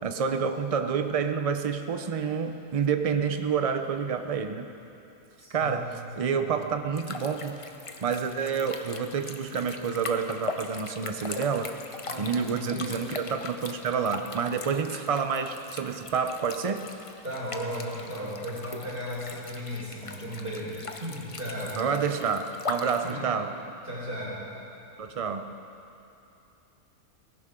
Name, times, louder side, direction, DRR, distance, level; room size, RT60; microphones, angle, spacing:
voice 1, 0.0-4.7 5.5-7.6 8.0-11.7 12.2-16.9 21.8-23.5 25.0-25.5, right 6 dB, 55° right, 7 dB, 0.3 m, -28 dB
voice 2, 5.4-6.5 12.0-13.1 17.2-21.8 23.0-23.3 23.8-24.4, equal, 40° right, -7 dB, 4.8 m, -36 dB
sound 1, 6.9-23.1, left 3 dB, 35° left, 0.5 m, -40 dB
18.5 x 16.5 x 3.7 m, 2.8 s
omnidirectional pair, 1.6 m